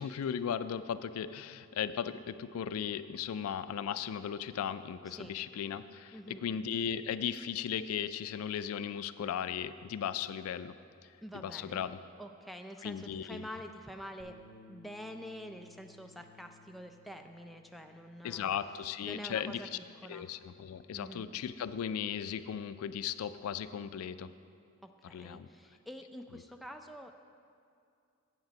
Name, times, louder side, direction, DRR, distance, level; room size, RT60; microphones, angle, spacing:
voice 1, 0.0-10.7 11.4-12.0 12.8-13.4 18.2-19.6 20.1-24.3 25.1-25.5, left 8 dB, 85° left, 14 dB, 0.3 m, -36 dB
voice 2, 5.1-5.4 6.1-6.5 11.2-11.8 12.2-14.4 14.7-18.5 19.0-20.3 20.9-21.3 24.8-27.2, equal, ahead, 4 dB, 0.3 m, -47 dB
Bass guitar, 14.2-20.4, left 4 dB, 40° left, 1.1 m, -60 dB
8.0 x 7.9 x 5.1 m, 2.4 s
head